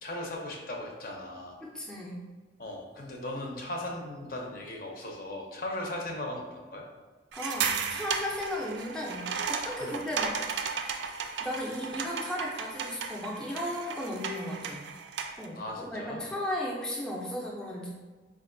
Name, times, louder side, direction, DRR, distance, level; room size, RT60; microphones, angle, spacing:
voice 1, 0.0-1.6 2.6-6.8 9.8-10.0 15.6-16.3, left 1 dB, 50° left, 0 dB, 0.6 m, -38 dB
voice 2, 1.6-2.2 7.3-10.6 11.4-14.8 15.4-17.9, left 1 dB, 5° left, -4 dB, 0.4 m, -35 dB
sound 1, 7.3-15.5, right 6 dB, 75° right, 0.3 m, -35 dB
4.4 x 2.4 x 2.5 m, 1.3 s
head